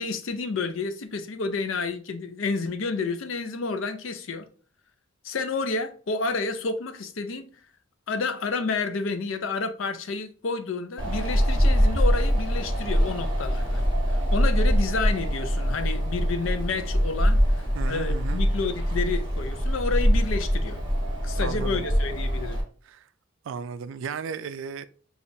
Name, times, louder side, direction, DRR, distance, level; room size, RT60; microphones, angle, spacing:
voice 1, 0.0-4.5 5.2-7.5 8.1-13.8 14.3-20.8 21.2-22.6, left 4 dB, 75° left, 0.5 m, -30 dB
Wind, 11.0-22.6, equal, 20° right, 1.2 m, -24 dB
voice 2, 17.7-18.4 21.4-21.8 22.8-23.1 23.4-24.9, right 6 dB, 70° right, 0.3 m, -35 dB
6.8 x 2.4 x 2.6 m
head